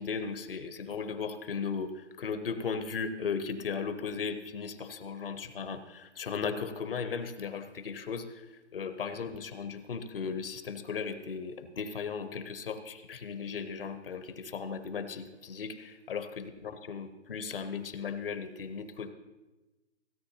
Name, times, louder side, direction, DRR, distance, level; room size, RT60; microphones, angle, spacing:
voice 1, 0.0-8.5 8.7-19.1, left 5 dB, 50° left, 10 dB, 0.9 m, -36 dB
16.5 x 9.3 x 2.8 m, 1.1 s
figure-of-eight pair, 150°, 35 cm